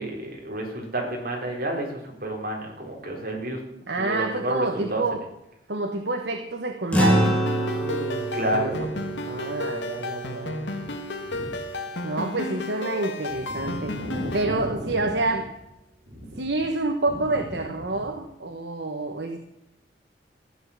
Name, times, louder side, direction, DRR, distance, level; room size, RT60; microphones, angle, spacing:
voice 1, 0.0-3.6 4.0-5.0 8.3-8.9 11.3-11.5 13.5-15.1 16.1-16.4 17.3-17.4, right 1 dB, 55° right, 0 dB, 4.0 m, -31 dB
voice 2, 3.9-5.2 5.7-7.3 7.8-8.7 9.3-10.7 12.0-14.0 14.3-15.5 16.4-19.4, right 2 dB, 70° right, 5 dB, 1.2 m, -28 dB
sound 1, 6.9-11.6, right 1 dB, 5° left, 2.5 m, -27 dB
sound 2, 7.2-14.5, left 2 dB, 85° left, 1.4 m, -33 dB
15.0 x 9.7 x 7.2 m, 0.86 s
head